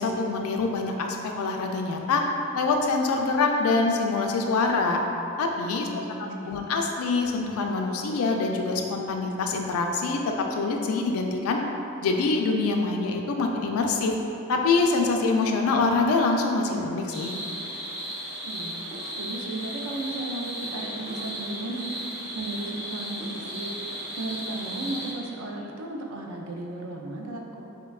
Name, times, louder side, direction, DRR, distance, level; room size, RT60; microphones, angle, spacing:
voice 1, 0.0-2.2 2.6-5.0 5.4-5.9 6.5-10.2 10.5-11.6 12.0-14.1 14.5-17.3, left 3 dB, 85° left, 2 dB, 0.3 m, -25 dB
voice 2, 5.8-6.5 18.4-21.9 22.3-27.6, right 2 dB, 75° right, 0 dB, 0.4 m, -35 dB
sound 1, 8.1-8.4 10.3-10.6 12.4-12.7 14.6-14.9 16.8-17.1 18.9-19.2 21.1-21.4 23.2-23.5, equal, 25° right, 0.5 m, -44 dB
sound 2, 17.1-25.1, right 1 dB, 55° right, 0.9 m, -35 dB
4.1 x 2.2 x 2.3 m, 2.7 s
head